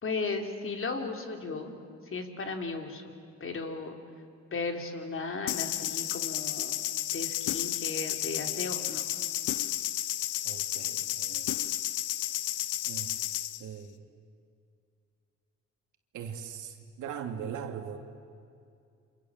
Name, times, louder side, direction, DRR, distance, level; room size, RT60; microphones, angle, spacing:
voice 1, 0.0-1.7 2.1-3.0 3.4-3.9 4.5-6.7 7.1-9.0, left 4 dB, 45° left, 4 dB, 3.6 m, -35 dB
sound 1, 5.5-13.6, left 14 dB, 85° left, 0.9 m, -32 dB
voice 2, 10.4-11.5 12.8-13.2 13.6-14.1 16.1-18.0, right 7 dB, 85° right, 4 dB, 2.9 m, -40 dB
29.0 x 26.5 x 7.6 m, 2.4 s
cardioid pair, 90°, 30 cm